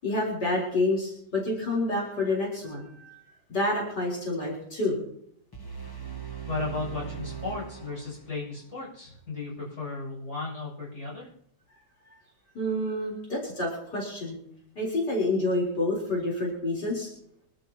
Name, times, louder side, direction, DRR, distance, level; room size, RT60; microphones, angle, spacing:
voice 1, 0.0-3.2 3.5-5.0 12.5-14.4 14.8-17.1, left 2 dB, 80° left, -4 dB, 4.8 m, -28 dB
sound 1, 5.5-8.6, right 8 dB, 15° left, 0.9 m, -39 dB
voice 2, 6.5-11.3, left 3 dB, 40° left, -5 dB, 8.1 m, -35 dB
26.0 x 12.5 x 3.0 m, 0.71 s
omnidirectional pair, 1.8 m